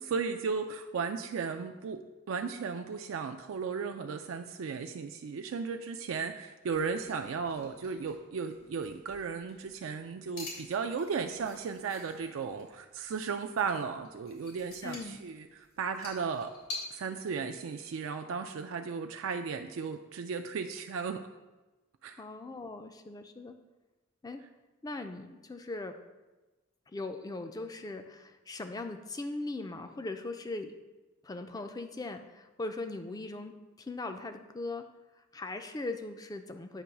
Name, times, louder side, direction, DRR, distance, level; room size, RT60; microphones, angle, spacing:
voice 1, 0.1-2.0 2.3-15.5 15.8-16.5 16.9-21.2 22.0-22.2, right 5 dB, 70° right, 6 dB, 0.3 m, -35 dB
sound 1, 6.6-16.8, left 3 dB, 90° left, 2.5 m, -48 dB
voice 2, 14.8-15.2 22.2-23.6 24.2-24.4 24.8-26.0 26.9-30.7 31.2-34.9 35.3-36.8, left 2 dB, 20° left, 7 dB, 0.3 m, -39 dB
8.3 x 3.1 x 5.8 m, 1.1 s
head